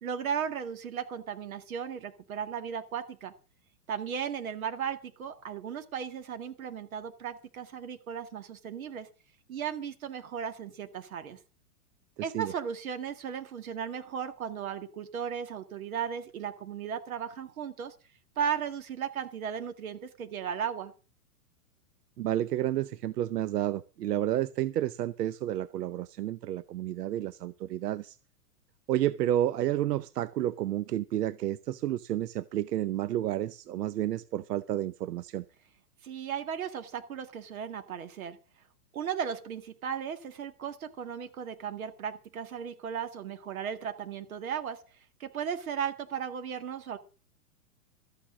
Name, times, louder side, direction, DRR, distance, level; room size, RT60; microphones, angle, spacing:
voice 1, 0.0-3.3 3.9-9.1 9.5-11.4 12.2-17.9 18.4-20.9 36.0-38.4 38.9-44.8 45.2-47.0, right 8 dB, 60° right, 2.1 m, -36 dB
voice 2, 12.2-12.5 22.2-28.2 28.9-35.4, right 12 dB, 85° right, 0.7 m, -30 dB
13.5 x 8.8 x 6.1 m
hypercardioid pair, 175°, 46 cm